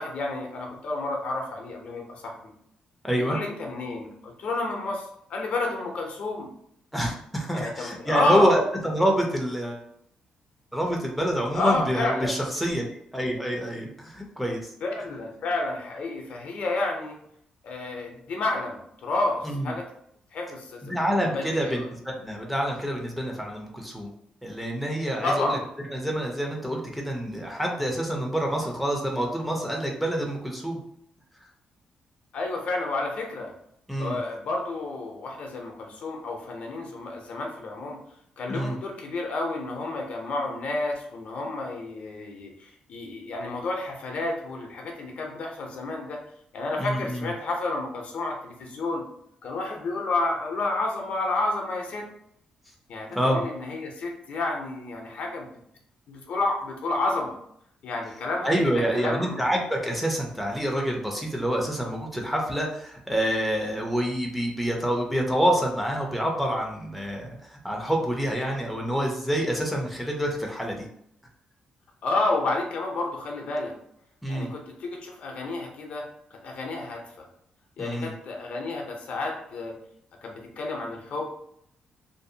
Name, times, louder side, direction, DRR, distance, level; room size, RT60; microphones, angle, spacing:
voice 1, 0.0-2.5 3.1-6.5 7.5-8.6 11.5-12.4 14.8-17.1 17.6-19.8 20.3-20.9 21.3-21.9 25.2-25.6 32.3-33.5 34.0-38.0 38.4-46.2 46.5-49.0 49.4-52.1 52.9-55.5 56.1-57.4 57.8-59.5 72.0-73.7 74.3-76.1 76.4-77.0 77.8-79.8 80.2-81.3, left 2 dB, 60° left, 1 dB, 0.6 m, -30 dB
voice 2, 3.0-3.4 6.9-9.8 10.7-12.9 13.1-14.7 19.4-19.8 20.8-24.1 24.4-25.6 25.9-30.8 33.9-34.2 38.5-38.8 46.8-47.3 53.1-53.4 58.4-70.9 74.2-74.5 77.8-78.1, equal, ahead, 0 dB, 0.4 m, -27 dB
2.6 x 2.0 x 2.6 m, 0.72 s
cardioid pair, 125°, 3 cm